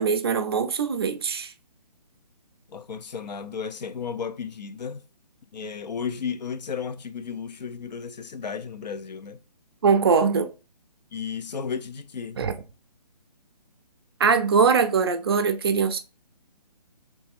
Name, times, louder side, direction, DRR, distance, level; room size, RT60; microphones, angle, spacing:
voice 1, 0.0-1.5 9.8-10.5 12.4-12.5 14.2-16.0, right 5 dB, 35° right, 0.4 m, -22 dB
voice 2, 2.7-5.1 5.5-9.4 11.1-12.4, left 6 dB, 80° left, 0.4 m, -34 dB
3.1 x 3.0 x 3.4 m
figure-of-eight pair, 145°, 21 cm